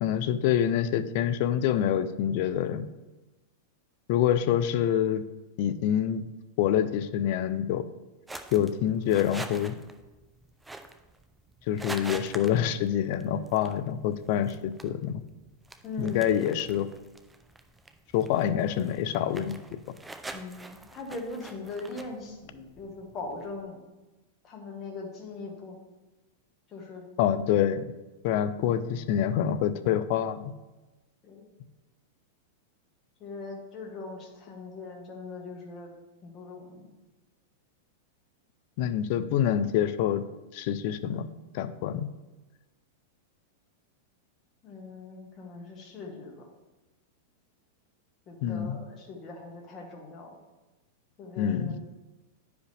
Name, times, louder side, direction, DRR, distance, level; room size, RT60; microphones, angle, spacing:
voice 1, 0.0-2.8 4.1-5.2 5.6-6.2 6.6-7.8 8.5-9.8 11.7-15.2 16.0-16.9 18.1-19.8 27.2-27.8 28.2-30.5 38.8-40.2 40.5-41.3 41.5-42.1 48.4-48.8 51.4-51.8, left 10 dB, 55° left, 12 dB, 0.5 m, -26 dB
sound 1, 8.3-23.6, right 2 dB, 10° right, 0.5 m, -46 dB
voice 2, 15.8-16.3 20.3-23.8 24.4-25.8 26.7-27.0 31.2-31.5 33.2-35.9 36.2-36.9 44.6-46.4 48.3-50.4 51.2-51.8, left 3 dB, 30° left, 0 dB, 1.6 m, -40 dB
10.0 x 5.0 x 3.4 m, 1.1 s
supercardioid pair, 140°, 0 cm